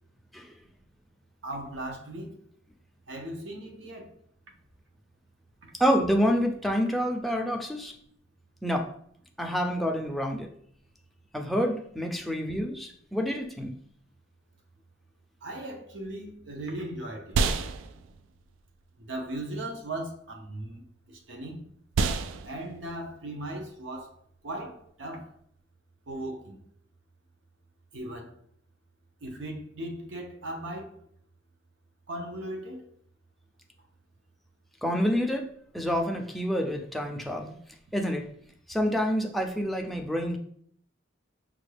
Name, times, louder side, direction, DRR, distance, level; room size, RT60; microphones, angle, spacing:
voice 1, 1.4-2.3 3.1-4.1 15.4-17.4 19.0-20.8 21.1-21.6 22.4-24.1 24.4-25.3 26.1-26.6 27.9-28.3 29.2-31.0 32.1-32.9, right 1 dB, 70° right, 0.8 m, -37 dB
voice 2, 5.8-7.9 8.6-8.9 9.4-10.5 11.3-13.7 34.8-35.5 35.7-37.5 37.9-38.3 38.7-40.4, equal, ahead, 0.4 m, -27 dB
sound 1, 16.0-25.6, right 4 dB, 90° right, 0.3 m, -34 dB
4.9 x 2.3 x 3.3 m
head